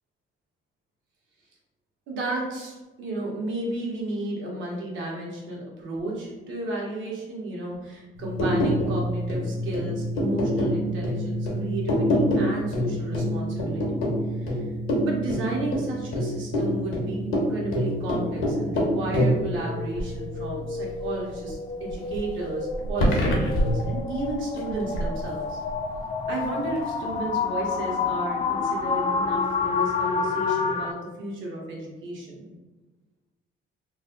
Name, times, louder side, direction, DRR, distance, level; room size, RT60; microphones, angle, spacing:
voice 1, 2.1-14.7 15.0-25.6 26.3-32.5, right 2 dB, 75° right, -3 dB, 1.1 m, -33 dB
sound 1, 8.2-21.5 21.9-25.2 25.7-26.0, equal, 85° left, 0.9 m, -26 dB
sound 2, 17.7-30.9, left 4 dB, 30° left, 0.3 m, -30 dB
3.2 x 2.2 x 3.8 m, 1.2 s
cardioid pair, 90°, 20 cm